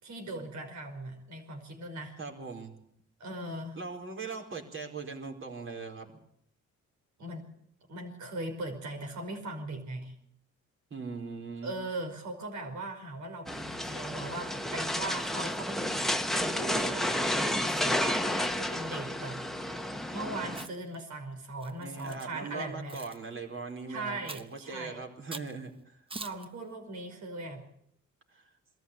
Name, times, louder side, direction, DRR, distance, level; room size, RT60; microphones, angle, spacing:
voice 1, 0.0-2.2 3.2-3.8 7.2-7.5 7.9-10.2 11.6-15.9 16.3-19.9 20.1-23.0 23.9-25.0 26.1-27.6, right 2 dB, 70° right, 4 dB, 5.5 m, -39 dB
voice 2, 2.2-2.8 3.7-6.1 10.9-11.7 21.8-26.0 28.3-28.5, right 4 dB, 45° right, 1 dB, 4.5 m, -40 dB
sound 1, 13.5-20.7, left 1 dB, ahead, 1.2 m, -31 dB
Chewing mastication, 20.5-20.9 21.6-22.3 22.9-23.2 24.3-24.6 25.3-25.5 26.1-26.5, right 3 dB, 20° right, 0.9 m, -43 dB
21.5 x 14.0 x 8.7 m, 0.70 s
cardioid pair, 90°, 30 cm